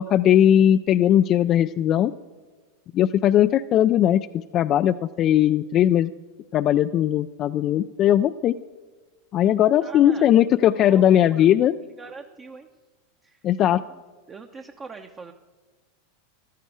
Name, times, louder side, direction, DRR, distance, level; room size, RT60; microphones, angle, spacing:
voice 1, 0.0-2.1 2.9-6.1 6.5-8.6 9.3-11.8 13.4-13.8, left 11 dB, 40° left, 11 dB, 0.3 m, -19 dB
voice 2, 9.8-10.3 10.7-11.6 12.0-12.7 13.2-13.4 13.7-13.8 14.3-15.3, right 4 dB, 25° right, 4 dB, 0.8 m, -42 dB
15.0 x 12.0 x 4.9 m, 1.3 s
hypercardioid pair, 95°, 0 cm